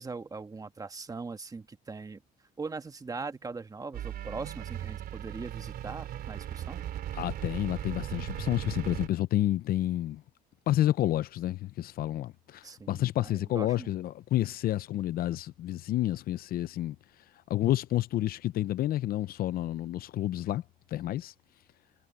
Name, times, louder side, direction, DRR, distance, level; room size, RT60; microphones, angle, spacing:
voice 1, 0.0-2.2 2.6-6.8 12.6-13.9, right 4 dB, 20° right, 1.4 m, -40 dB
sound 1, 3.9-9.1, right 11 dB, 65° right, 3.9 m, -37 dB
voice 2, 7.1-10.2 10.7-17.0 17.5-20.6 20.9-21.3, left 14 dB, 60° left, 0.6 m, -29 dB
cardioid pair, 110°, 17 cm